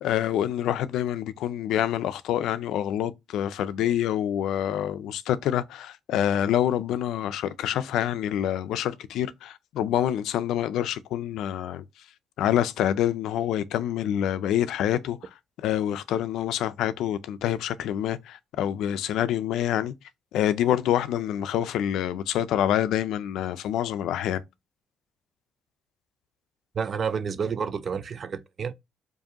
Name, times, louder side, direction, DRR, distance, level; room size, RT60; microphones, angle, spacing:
voice 1, 0.0-11.8 12.4-15.2 15.6-19.9 20.3-24.4, left 11 dB, 85° left, 0.4 m, -26 dB
voice 2, 26.7-28.7, right 6 dB, 40° right, 0.4 m, -30 dB
4.7 x 2.6 x 2.8 m
cardioid pair, 150°, 0 cm